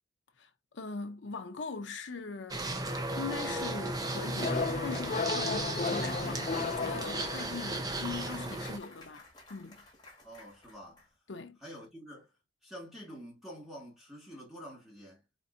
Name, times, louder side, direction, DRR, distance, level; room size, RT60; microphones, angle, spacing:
voice 1, 0.4-2.7 3.1-9.2 9.5-9.8 11.3-11.6, left 4 dB, 80° left, 0.7 m, -41 dB
sound 1, 2.5-8.8, right 2 dB, 20° right, 0.6 m, -35 dB
sound 2, 4.4-7.9, left 4 dB, 40° left, 0.4 m, -34 dB
Clapping / Cheering / Applause, 4.8-11.1, left 3 dB, 20° left, 1.6 m, -54 dB
voice 2, 10.2-11.1 11.6-12.3 12.6-15.2, equal, ahead, 1.9 m, -48 dB
4.2 x 4.0 x 2.6 m
head